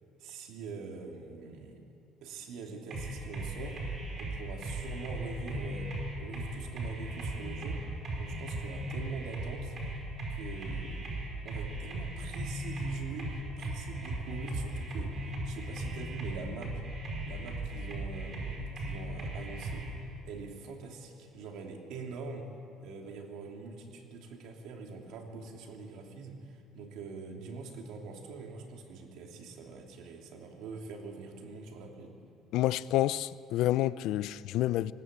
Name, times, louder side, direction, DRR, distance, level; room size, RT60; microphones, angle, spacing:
voice 1, 0.2-1.8 2.2-3.8 4.2-7.8 8.2-9.8 10.3-11.1 11.4-16.8 17.2-22.5 22.8-32.2, right 4 dB, 70° right, 3.1 m, -44 dB
sound 1, 2.9-19.9, right 1 dB, 35° right, 4.9 m, -37 dB
voice 2, 32.5-34.9, left 14 dB, 70° left, 0.5 m, -28 dB
20.0 x 17.5 x 8.2 m
cardioid pair, 150°, 0 cm